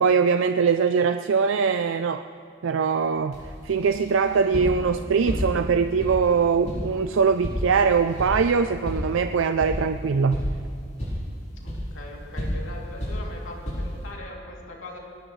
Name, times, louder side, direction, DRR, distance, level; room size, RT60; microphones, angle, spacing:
voice 1, 0.0-2.3 2.6-3.4 3.6-10.4, right 5 dB, 75° right, 9 dB, 0.4 m, -22 dB
sound 1, 3.3-14.1, equal, 35° left, 4.8 m, -33 dB
voice 2, 11.6-15.0, left 2 dB, 80° left, -2 dB, 2.8 m, -41 dB
20.5 x 18.0 x 3.2 m, 2.4 s
head